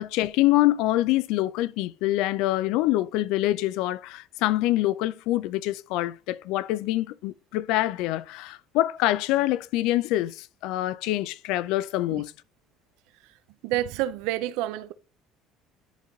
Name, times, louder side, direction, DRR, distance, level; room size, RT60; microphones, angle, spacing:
voice 1, 0.0-12.3, left 16 dB, 75° left, 0.3 m, -25 dB
voice 2, 13.6-14.9, right 13 dB, 85° right, 0.5 m, -28 dB
10.5 x 3.8 x 3.1 m
cardioid pair, 160°, 0 cm